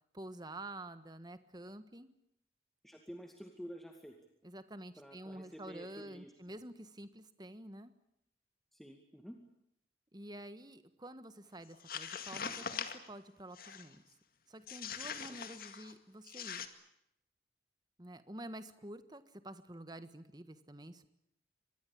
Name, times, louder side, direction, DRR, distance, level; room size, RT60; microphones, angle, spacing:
voice 1, 0.1-2.1 4.4-7.9 10.1-14.0 14.5-16.6 18.0-21.1, right 1 dB, 20° right, 11 dB, 1.5 m, -49 dB
voice 2, 2.8-4.1 5.0-6.3 8.7-9.4 15.3-15.4, equal, ahead, 3 dB, 2.2 m, -50 dB
sound 1, 11.7-13.1 13.5-13.9 14.7-15.9 16.3-16.7, left 7 dB, 50° left, 2.0 m, -42 dB
25.5 x 21.0 x 8.7 m, 0.78 s
head